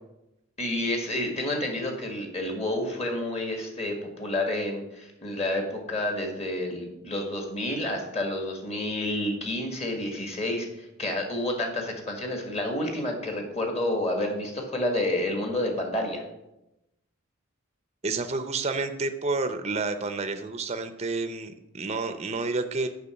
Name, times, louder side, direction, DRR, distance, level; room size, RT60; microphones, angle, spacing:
voice 1, 0.6-16.2, left 1 dB, 30° left, 2 dB, 1.6 m, -29 dB
voice 2, 18.0-22.9, right 3 dB, 30° right, 9 dB, 0.6 m, -30 dB
6.8 x 5.6 x 7.1 m, 0.91 s
head